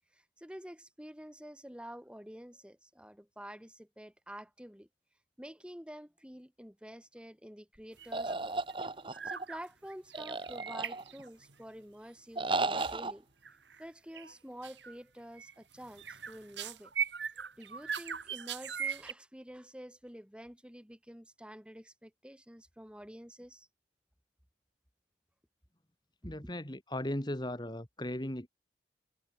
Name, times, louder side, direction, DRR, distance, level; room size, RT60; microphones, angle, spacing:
voice 1, 0.1-4.9 5.4-8.6 9.2-13.3 13.8-16.9 17.6-23.7 26.2-26.5, equal, 5° right, 3.1 m, -49 dB
sound 1, 8.0-8.4 8.6-8.9 9.1-9.6 9.9-11.6 12.8-12.9 13.4-13.8 14.1-14.3 14.6-15.0 15.4-19.1, right 7 dB, 85° right, 5.0 m, -40 dB
sound 2, 8.1-9.4 10.1-11.3 12.3-13.1, right 3 dB, 30° right, 1.7 m, -34 dB
voice 2, 26.2-28.5, left 1 dB, 25° left, 2.4 m, -37 dB
head